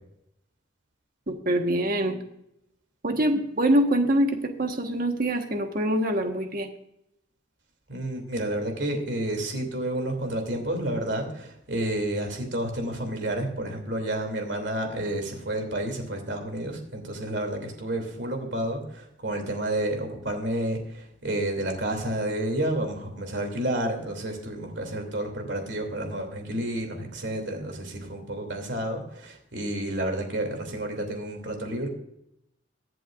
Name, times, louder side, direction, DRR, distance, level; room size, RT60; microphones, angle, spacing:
voice 1, 1.3-2.2 3.0-6.7, right 1 dB, 50° right, 4 dB, 1.4 m, -24 dB
voice 2, 7.9-31.9, right 1 dB, 65° right, 4 dB, 2.8 m, -30 dB
23.0 x 7.7 x 2.5 m, 0.79 s
head